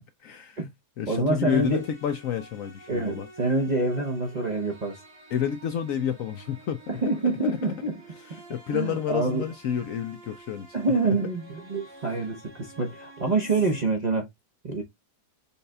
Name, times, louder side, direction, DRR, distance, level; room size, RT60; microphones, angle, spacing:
voice 1, 0.2-0.6 1.0-3.3 5.3-6.8 7.6-7.7 8.2-10.7, left 9 dB, 70° left, 0.8 m, -29 dB
voice 2, 1.1-1.8 2.9-5.0 6.9-8.0 8.7-9.5 10.7-14.3 14.6-14.8, right 3 dB, 40° right, 0.6 m, -26 dB
sound 1, 1.5-13.9, right 2 dB, 70° right, 2.4 m, -50 dB
5.5 x 3.8 x 2.2 m
omnidirectional pair, 1.8 m